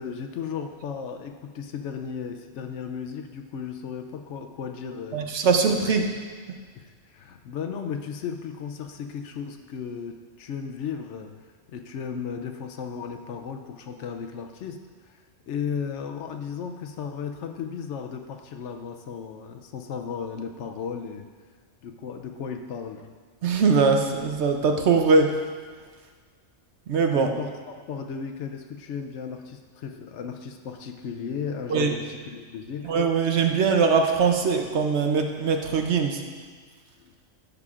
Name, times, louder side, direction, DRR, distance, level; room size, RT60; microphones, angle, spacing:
voice 1, 0.0-5.3 5.8-5.9 6.8-11.3 11.7-14.8 15.1-15.2 15.5-21.3 21.8-23.1 27.1-32.9 37.0-37.1, left 6 dB, 70° left, 5 dB, 0.8 m, -35 dB
voice 2, 5.1-6.0 23.4-25.3 26.9-27.3 31.7-31.9 32.8-36.2, right 5 dB, 65° right, 4 dB, 0.9 m, -21 dB
11.5 x 6.9 x 2.4 m, 1.5 s
omnidirectional pair, 1.3 m